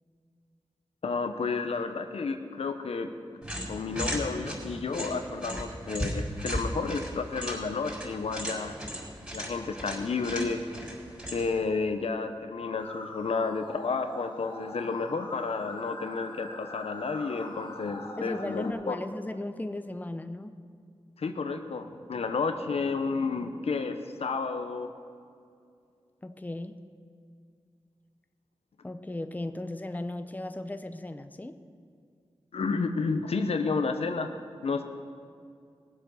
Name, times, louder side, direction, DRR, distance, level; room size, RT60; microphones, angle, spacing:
voice 1, 1.0-3.4 3.7-8.7 9.3-10.6 11.3-19.0 21.2-24.9 32.5-34.8, left 4 dB, 80° left, 7 dB, 0.9 m, -31 dB
sound 1, 3.4-11.6, equal, 10° right, 4.2 m, -37 dB
sound 2, 12.8-18.7, left 2 dB, 55° left, 1.9 m, -43 dB
voice 2, 18.2-20.5 26.2-26.8 28.8-31.6, left 1 dB, 15° left, 9 dB, 0.7 m, -36 dB
18.5 x 7.7 x 6.5 m, 2.3 s
cardioid pair, 55°, 10 cm